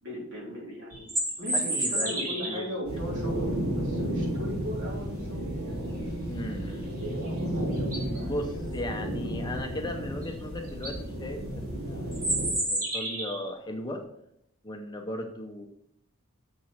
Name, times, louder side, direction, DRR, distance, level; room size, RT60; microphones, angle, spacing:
voice 1, 0.0-1.1 1.4-6.1 6.9-8.5 9.0-9.5, left 1 dB, 55° right, -4 dB, 3.4 m, -39 dB
sound 1, 0.9-2.7 7.2-7.3 7.8-8.2 10.2-10.3 10.7-10.9 12.1-13.5, right 1 dB, 40° right, 2.5 m, -30 dB
voice 2, 1.5-2.6 6.3-6.9 8.2-12.2 12.5-14.0 14.6-15.7, left 1 dB, 20° left, 3 dB, 0.6 m, -37 dB
sound 2, 2.8-12.5, right 1 dB, 85° right, 3.7 m, -32 dB
7.1 x 5.4 x 5.7 m, 0.76 s
head